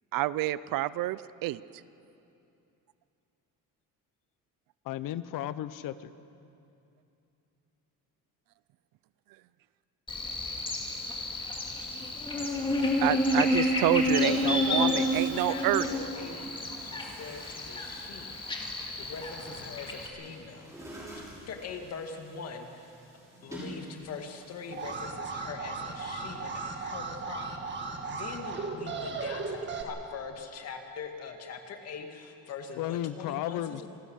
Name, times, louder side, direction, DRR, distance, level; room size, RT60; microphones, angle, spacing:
voice 1, 0.1-1.6 13.0-15.9, right 16 dB, 70° right, 18 dB, 0.6 m, -28 dB
voice 2, 4.8-6.1 32.8-33.8, left 12 dB, 65° left, 14 dB, 0.9 m, -34 dB
Buzz, 10.1-20.1, left 1 dB, 15° left, 2.2 m, -30 dB
voice 3, 14.1-18.4 18.7-21.1 21.5-22.9 23.4-27.6 28.1-33.9, left 5 dB, 45° left, 4 dB, 2.0 m, -42 dB
Chatter / Gurgling / Tap, 16.0-25.0, right 1 dB, 10° right, 5.9 m, -49 dB
Alarm, 24.7-29.8, right 4 dB, 30° right, 1.7 m, -36 dB
27.5 x 18.5 x 6.5 m, 2.7 s
cardioid pair, 175°, 35 cm